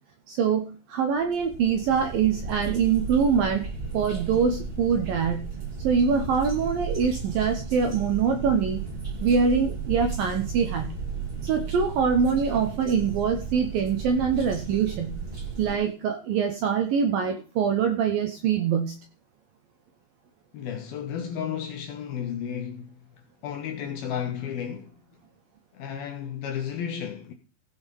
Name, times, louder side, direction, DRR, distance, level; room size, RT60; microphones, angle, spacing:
voice 1, 0.3-3.7 3.9-5.5 5.8-8.8 9.2-10.9 11.4-15.2 15.6-18.9, right 6 dB, 75° right, 2.2 m, -24 dB
sound 1, 1.2-15.7, right 5 dB, 40° right, 0.8 m, -34 dB
voice 2, 20.5-22.9 23.4-25.0 25.7-27.3, left 8 dB, 70° left, 2.4 m, -33 dB
16.0 x 6.1 x 5.4 m
omnidirectional pair, 5.4 m